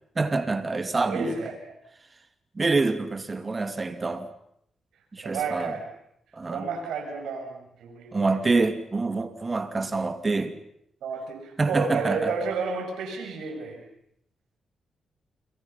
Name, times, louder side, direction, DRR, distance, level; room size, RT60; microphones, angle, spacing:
voice 1, 0.2-1.4 2.6-4.3 5.1-5.7 6.3-6.7 8.1-10.6 11.6-12.3, right 3 dB, 35° right, 2.6 m, -26 dB
voice 2, 1.1-1.5 5.2-5.9 6.5-8.5 11.0-13.8, right 4 dB, 90° right, 7.0 m, -31 dB
30.0 x 26.5 x 5.8 m
cardioid pair, 70°, 0 cm